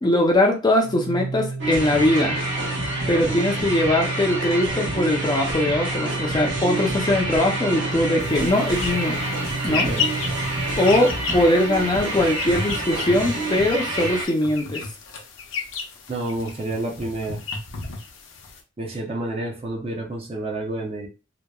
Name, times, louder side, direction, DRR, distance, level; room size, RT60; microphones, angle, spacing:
voice 1, 0.0-2.4 3.1-9.2 9.6-9.9 10.8-14.8, left 1 dB, 20° left, 0 dB, 0.4 m, -21 dB
Organ, 0.8-11.7, right 3 dB, 80° right, 0.5 m, -32 dB
sound 1, 1.6-14.3, right 1 dB, 65° right, 1.0 m, -28 dB
sound 2, 8.2-18.6, left 4 dB, 65° left, 0.6 m, -33 dB
voice 2, 9.6-10.1 16.1-17.4 18.8-21.1, right 2 dB, 30° right, -1 dB, 0.6 m, -29 dB
2.8 x 2.1 x 2.2 m, 0.30 s
head